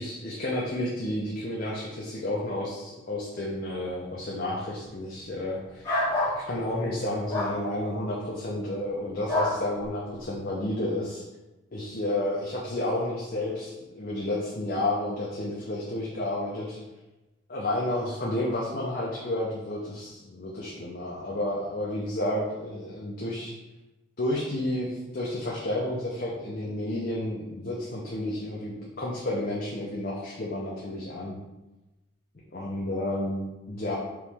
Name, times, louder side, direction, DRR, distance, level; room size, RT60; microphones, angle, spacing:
voice 1, 0.0-6.0 6.4-11.2 11.7-16.8 17.5-23.5 24.2-31.4 32.5-34.0, left 1 dB, 45° left, -4 dB, 0.6 m, -31 dB
sound 1, 5.8-6.4 7.3-7.5 9.3-9.6, left 2 dB, 15° left, 1.1 m, -26 dB
4.6 x 3.0 x 3.5 m, 1.1 s
head